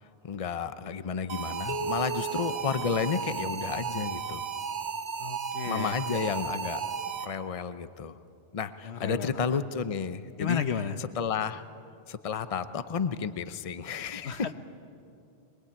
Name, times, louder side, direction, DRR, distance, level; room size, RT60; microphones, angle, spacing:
voice 1, 0.2-4.5 5.6-6.8 7.2-8.2 8.5-10.6 11.0-11.6 12.1-14.5, left 6 dB, 35° left, 11 dB, 0.8 m, -32 dB
sound 1, 1.3-7.6, right 6 dB, 50° right, 0.8 m, -34 dB
sound 2, 1.7-3.6, right 3 dB, 85° right, 2.1 m, -37 dB
voice 2, 5.2-5.9 8.8-9.6 10.4-11.0 14.2-14.5, left 7 dB, 85° left, 9 dB, 1.2 m, -33 dB
22.5 x 22.5 x 8.7 m, 2.6 s
omnidirectional pair, 1.1 m